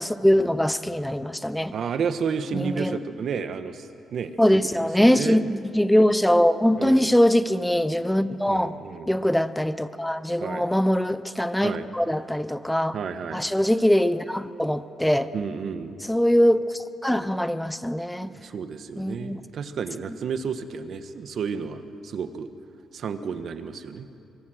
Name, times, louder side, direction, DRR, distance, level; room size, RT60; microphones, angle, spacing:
voice 1, 0.0-1.7 2.5-3.0 4.4-8.8 9.1-12.9 13.3-15.3 16.1-18.3 19.0-19.4, equal, 5° left, 13 dB, 0.8 m, -22 dB
voice 2, 1.7-4.4 4.8-5.5 6.8-7.1 8.5-9.1 10.4-10.7 11.6-11.9 12.9-13.4 15.3-15.9 18.2-22.5 22.9-24.1, right 6 dB, 60° right, 9 dB, 1.4 m, -31 dB
24.5 x 23.5 x 6.5 m, 2.6 s
cardioid pair, 100°, 0 cm